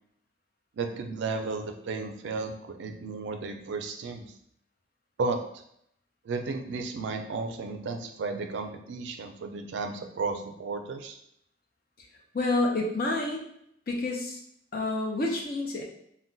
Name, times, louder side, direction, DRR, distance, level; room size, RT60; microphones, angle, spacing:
voice 1, 0.7-4.3 5.2-5.6 6.2-11.2, right 4 dB, 75° right, 5 dB, 0.4 m, -33 dB
voice 2, 12.3-13.4 13.9-14.4 14.7-15.8, left 2 dB, 50° left, 1 dB, 0.5 m, -28 dB
2.2 x 2.2 x 3.8 m, 0.71 s
head